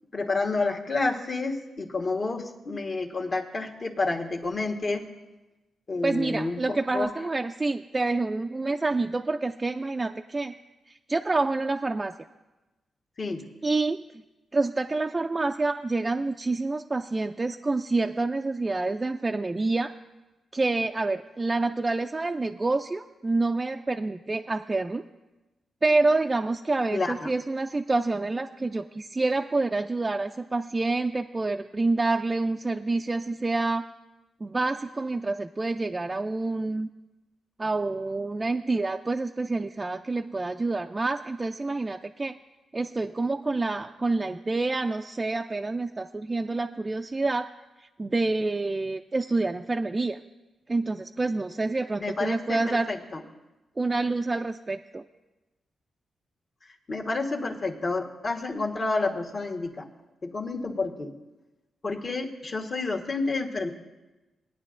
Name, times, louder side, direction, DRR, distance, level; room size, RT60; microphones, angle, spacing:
voice 1, 0.1-5.1 5.9-7.1 13.2-13.4 26.9-27.3 52.0-53.2 56.9-59.9 60.2-61.1 61.8-63.7, left 3 dB, 45° left, 1 dB, 1.2 m, -29 dB
voice 2, 6.0-10.5 10.9-12.1 13.6-14.0 14.5-19.9 20.5-25.0 25.8-33.8 34.4-36.9 37.6-42.4 42.7-47.5 48.0-50.2 50.7-52.9 53.8-55.0, right 3 dB, 25° right, 5 dB, 0.3 m, -27 dB
18.5 x 9.4 x 2.5 m, 1.1 s
cardioid pair, 75°, 0 cm